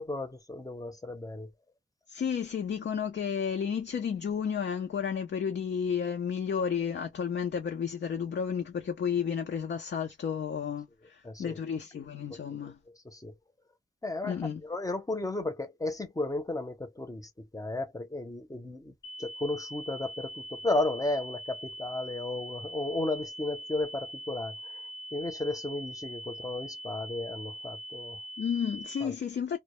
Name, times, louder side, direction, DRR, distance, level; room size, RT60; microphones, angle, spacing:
voice 1, 0.0-1.5 11.2-11.6 12.3-12.4 13.0-13.3 14.0-24.5 25.1-28.2 29.0-29.1, left 2 dB, 20° left, 0.6 m, -34 dB
voice 2, 2.1-12.8 14.2-14.6 28.4-29.6, left 7 dB, 70° left, 0.4 m, -32 dB
sound 1, 19.0-29.0, right 1 dB, 15° right, 0.8 m, -43 dB
2.1 x 2.0 x 2.9 m
cardioid pair, 60°, 19 cm